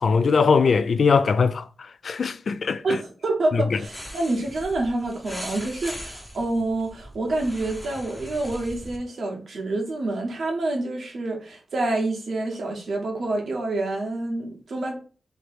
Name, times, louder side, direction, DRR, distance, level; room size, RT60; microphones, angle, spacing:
voice 1, 0.0-1.6 2.0-3.0, left 5 dB, 60° left, 0.3 m, -20 dB
voice 2, 2.8-15.0, right 2 dB, 70° right, 1.3 m, -27 dB
sound 1, 3.8-9.0, equal, 5° left, 0.8 m, -40 dB
3.2 x 3.0 x 4.5 m
wide cardioid pair, 135°, 0 cm